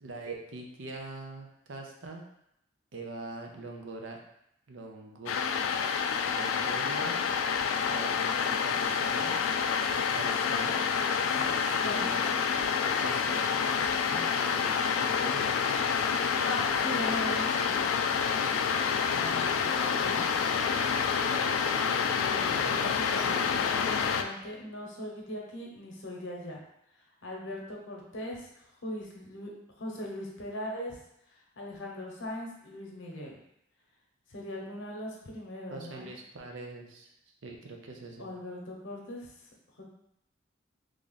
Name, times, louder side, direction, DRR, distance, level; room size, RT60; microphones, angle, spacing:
voice 1, 0.0-2.2 2.9-4.2 4.7-5.3 6.4-7.2 7.8-9.4 10.1-10.8 11.4-11.5 11.9-12.4 13.0-13.5 13.8-14.8 15.2-15.5 15.9-16.0 21.3-22.0 22.5-23.4 35.7-37.1 37.4-38.3, right 3 dB, 75° right, 2 dB, 0.6 m, -43 dB
sound 1, 5.3-24.2, left 6 dB, 90° left, 0.3 m, -28 dB
voice 2, 11.8-12.2 16.4-17.8 19.0-20.6 22.1-26.6 27.2-29.5 29.8-31.0 31.3-33.4 34.3-36.1 38.2-39.3 39.8-39.9, left 1 dB, 75° left, -1 dB, 0.8 m, -40 dB
3.2 x 2.4 x 3.9 m, 0.77 s
head